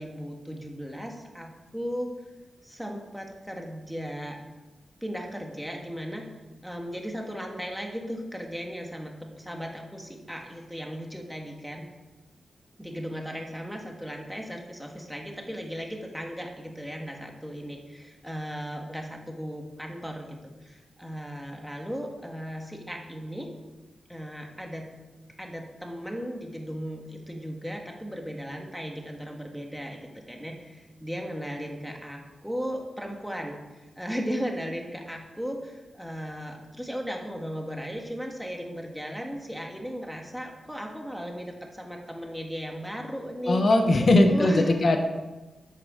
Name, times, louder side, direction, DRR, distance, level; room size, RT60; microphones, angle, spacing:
voice 1, 0.0-2.1 2.6-4.4 5.0-6.3 6.6-11.9 12.8-23.5 24.1-24.9 25.4-44.8, equal, ahead, 1 dB, 1.6 m, -36 dB
voice 2, 43.5-45.0, left 2 dB, 45° left, 5 dB, 1.1 m, -20 dB
10.5 x 7.9 x 5.0 m, 1.1 s
wide cardioid pair, 140°, 0 cm